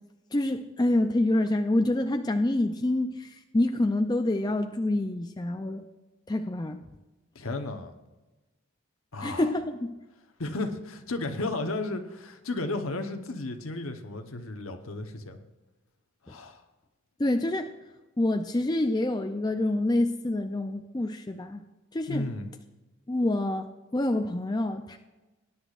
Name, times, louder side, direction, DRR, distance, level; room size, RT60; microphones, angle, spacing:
voice 1, 0.3-5.8 6.3-6.8 9.2-10.0 17.2-17.7 18.2-21.6 21.9-22.2 23.1-23.7 23.9-25.0, left 1 dB, 20° left, 5 dB, 0.4 m, -27 dB
voice 2, 7.3-7.9 9.1-9.5 10.4-15.4 16.2-16.6 22.1-22.5, left 2 dB, 65° left, 6 dB, 1.0 m, -33 dB
19.0 x 9.9 x 2.5 m, 1.1 s
head